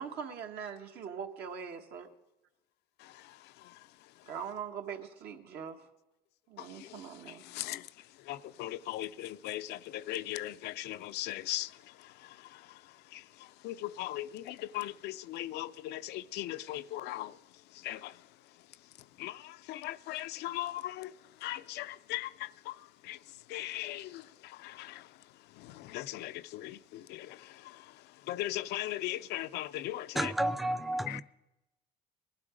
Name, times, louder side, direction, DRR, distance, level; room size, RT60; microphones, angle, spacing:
voice 1, 0.0-2.1 4.3-5.9 6.5-7.4, right 7 dB, 70° right, 1.4 m, -42 dB
voice 2, 3.0-4.3 6.6-30.3 31.1-31.2, left 15 dB, 80° left, 0.5 m, -40 dB
voice 3, 30.2-31.2, right 1 dB, ahead, 0.5 m, -31 dB
20.5 x 12.0 x 5.1 m
cardioid pair, 110°, 17 cm